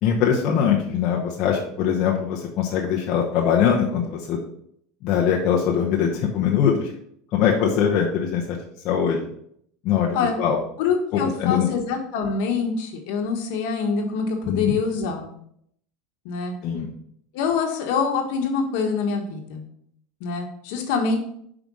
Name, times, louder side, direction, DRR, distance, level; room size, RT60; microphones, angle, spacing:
voice 1, 0.0-4.4 5.0-6.9 7.3-8.6 8.8-9.2 9.8-10.6 11.1-11.7 14.5-14.8 16.6-16.9, left 8 dB, 55° left, -1 dB, 1.1 m, -22 dB
voice 2, 10.8-15.3 16.2-16.5 17.3-19.6 20.2-21.2, left 5 dB, 70° left, 3 dB, 1.5 m, -25 dB
5.2 x 5.0 x 6.3 m, 0.69 s
supercardioid pair, 115°, 0 cm